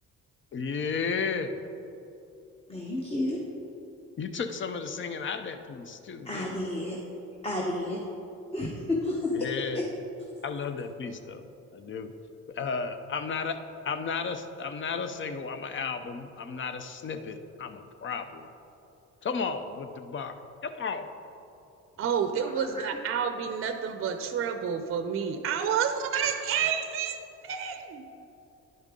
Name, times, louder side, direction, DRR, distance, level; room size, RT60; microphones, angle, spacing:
voice 1, 0.5-1.5 4.2-6.6 9.3-9.9 10.4-11.4 11.7-12.1 12.5-13.6 13.8-18.5 19.2-20.4 20.6-21.1, left 5 dB, 40° left, 9 dB, 0.6 m, -33 dB
voice 2, 2.7-3.4 6.2-7.0 7.4-8.0 8.5-9.5 9.7-9.8 22.4-22.9, left 1 dB, 20° left, -2 dB, 0.9 m, -31 dB
voice 3, 22.0-28.1, right 7 dB, 45° right, 7 dB, 0.5 m, -29 dB
10.5 x 5.3 x 3.7 m, 2.8 s
cardioid pair, 90°, 30 cm